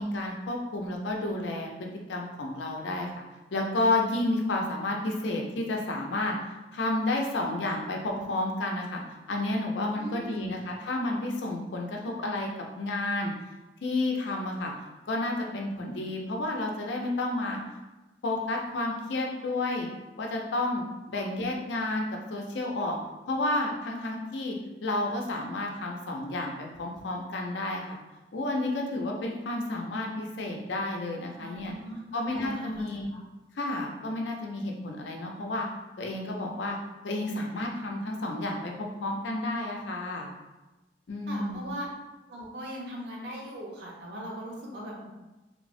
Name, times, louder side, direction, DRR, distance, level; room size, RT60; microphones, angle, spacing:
voice 1, 0.0-3.2 3.5-6.4 6.7-9.0 9.3-12.5 12.8-13.3 13.8-14.7 15.1-17.6 18.2-19.9 20.2-23.0 23.3-24.6 24.8-28.0 28.3-31.7 32.1-33.1 33.6-35.7 36.0-36.8 37.0-40.3 41.1-41.7, left 2 dB, 90° left, 0 dB, 0.5 m, -31 dB
voice 2, 9.9-10.5 21.1-21.3 31.4-32.0 32.3-32.8 33.1-33.2 41.3-41.9 42.3-45.0, equal, 70° right, -3 dB, 0.7 m, -39 dB
3.2 x 2.0 x 2.5 m, 1.1 s
head